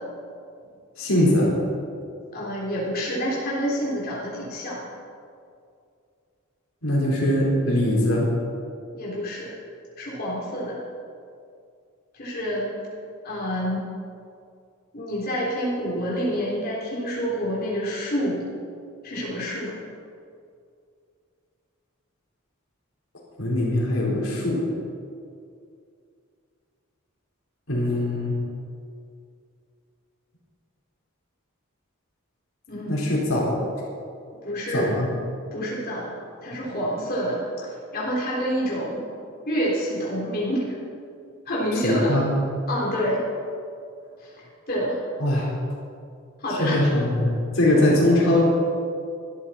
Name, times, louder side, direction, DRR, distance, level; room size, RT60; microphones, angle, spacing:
voice 1, 1.0-1.5 6.8-8.3 23.4-24.6 27.7-28.3 32.9-33.7 34.7-35.1 41.8-42.3 45.2-45.5 46.5-48.4, left 1 dB, 80° left, -4 dB, 4.4 m, -21 dB
voice 2, 2.3-4.8 8.9-9.5 10.0-10.8 12.1-12.8 13.2-13.9 14.9-18.4 19.0-19.7 32.7-33.2 34.4-34.9 35.5-36.1 36.4-39.1 39.4-40.8 41.5-42.2 42.7-43.2 44.2-44.3 44.7-45.0 46.4-46.8, equal, 45° left, -6 dB, 3.6 m, -27 dB
20.5 x 12.5 x 4.4 m, 2.4 s
head